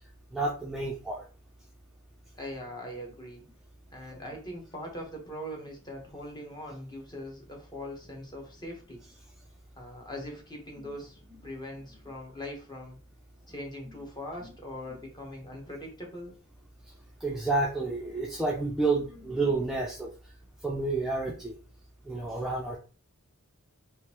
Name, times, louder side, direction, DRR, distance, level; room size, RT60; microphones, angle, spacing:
voice 1, 0.3-1.2 17.2-20.1 20.6-21.6 22.1-22.8, right 3 dB, ahead, -3 dB, 0.4 m, -30 dB
voice 2, 2.4-3.4 3.9-9.0 9.8-13.0 13.5-16.3, left 1 dB, 20° left, 0 dB, 1.0 m, -41 dB
3.7 x 2.6 x 2.8 m, 0.36 s
head